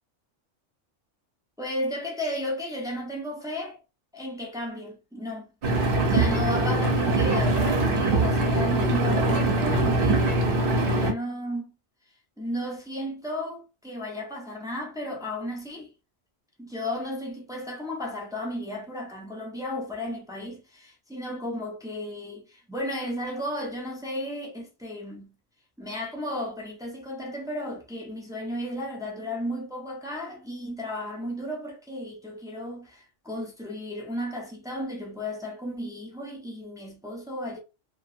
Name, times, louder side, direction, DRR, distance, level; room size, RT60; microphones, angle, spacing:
voice 1, 1.6-3.8 4.1-5.5 6.1-11.7 12.4-15.9 16.6-25.3 25.8-37.6, left 1 dB, 5° right, 0.3 m, -34 dB
Engine, 5.6-11.1, right 2 dB, 55° right, 0.8 m, -23 dB
2.4 x 2.3 x 2.6 m
omnidirectional pair, 1.3 m